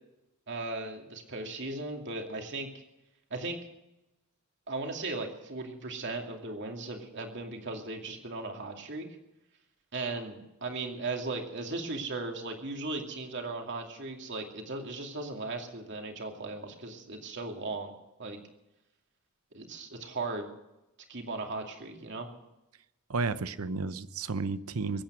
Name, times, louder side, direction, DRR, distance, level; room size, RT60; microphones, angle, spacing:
voice 1, 0.5-2.7 3.3-3.6 4.7-9.1 9.9-17.9 18.2-18.4 19.5-20.5 21.1-22.3, right 3 dB, 55° right, 3 dB, 2.5 m, -37 dB
voice 2, 23.1-25.0, right 4 dB, 90° right, 13 dB, 0.8 m, -32 dB
22.0 x 9.0 x 6.3 m, 0.92 s
head